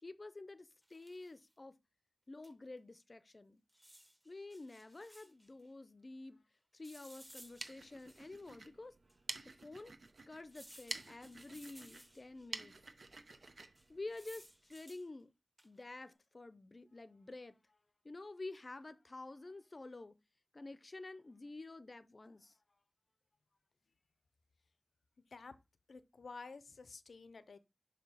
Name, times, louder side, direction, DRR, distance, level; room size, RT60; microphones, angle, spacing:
voice 1, 0.0-1.8 2.3-3.6 4.2-6.4 6.7-8.9 9.4-9.9 10.3-12.8 13.9-15.3 15.6-17.8 18.0-20.2 20.5-22.6, left 2 dB, 45° left, 0.5 m, -50 dB
sound 1, 0.8-1.4 2.4-2.5 2.8-2.9 3.7-5.5 6.8-8.5 9.1-9.2 10.5-12.5 13.7-15.1 15.6-15.9, equal, 5° right, 1.0 m, -60 dB
sound 2, 7.3-14.8, right 3 dB, 65° right, 0.7 m, -50 dB
voice 2, 25.9-27.6, left 4 dB, 90° left, 0.5 m, -51 dB
7.1 x 2.8 x 5.5 m
wide cardioid pair, 70°, 0 cm